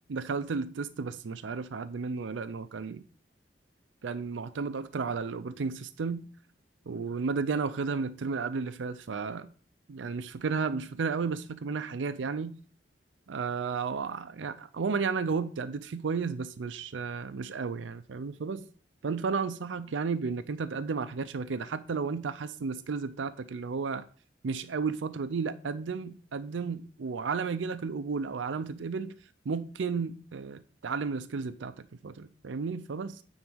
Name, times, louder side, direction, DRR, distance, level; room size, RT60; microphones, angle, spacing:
voice 1, 0.0-3.0 4.0-6.3 6.9-9.5 9.9-12.6 13.3-18.6 19.0-24.1 24.4-29.1 29.5-33.2, right 5 dB, 90° right, 0.5 m, -33 dB
9.5 x 4.0 x 6.2 m
head